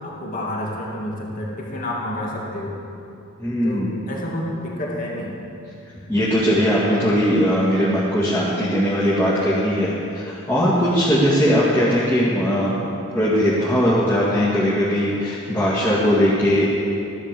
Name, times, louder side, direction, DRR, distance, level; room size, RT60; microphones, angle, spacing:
voice 1, 0.0-2.8 3.6-5.3, left 1 dB, 40° left, -3 dB, 2.5 m, -29 dB
voice 2, 3.4-4.0 6.1-12.9 13.1-16.6, equal, 15° left, -10 dB, 2.2 m, -19 dB
15.0 x 11.5 x 6.9 m, 2.7 s
head